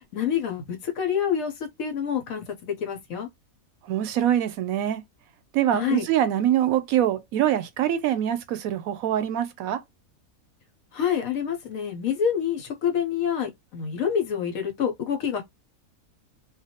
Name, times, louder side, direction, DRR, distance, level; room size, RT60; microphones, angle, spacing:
voice 1, 0.1-3.3 5.7-6.1 10.9-15.4, left 8 dB, 75° left, 1.1 m, -27 dB
voice 2, 3.9-5.0 5.5-9.8, right 11 dB, 80° right, 1.0 m, -24 dB
2.5 x 2.2 x 2.7 m
omnidirectional pair, 1.5 m